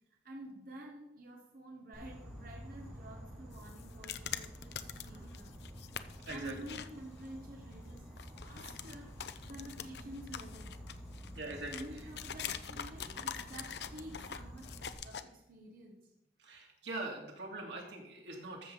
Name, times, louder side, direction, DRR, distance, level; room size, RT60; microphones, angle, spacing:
voice 1, 0.2-4.7 5.0-5.5 6.0-10.8 11.7-14.7 15.0-16.1, right 1 dB, 50° right, -1 dB, 1.5 m, -50 dB
Insect, 1.9-14.9, equal, ahead, 3.0 m, -50 dB
sound 1, 3.5-6.9 7.2-7.3 7.7-15.2, left 8 dB, 65° left, 0.6 m, -44 dB
voice 2, 4.9-5.3 6.2-6.6 11.3-11.8 16.4-18.7, right 2 dB, 90° right, 0 dB, 2.8 m, -43 dB
13.5 x 7.1 x 5.2 m, 0.87 s
head